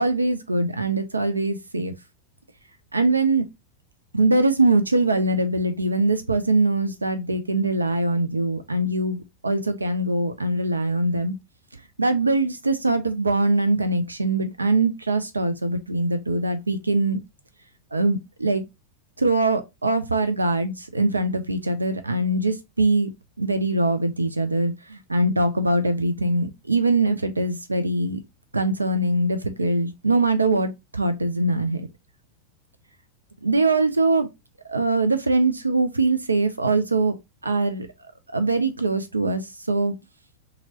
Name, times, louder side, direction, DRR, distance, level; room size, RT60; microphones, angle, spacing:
voice 1, 0.0-1.9 2.9-3.5 4.1-11.3 12.0-17.2 17.9-18.6 19.2-23.1 23.4-28.2 28.5-31.9 33.4-34.3 34.7-37.1 37.4-37.9 38.3-40.0, right 2 dB, 80° right, 0.3 m, -22 dB
2.8 x 2.5 x 2.7 m
figure-of-eight pair, 90°, 0 cm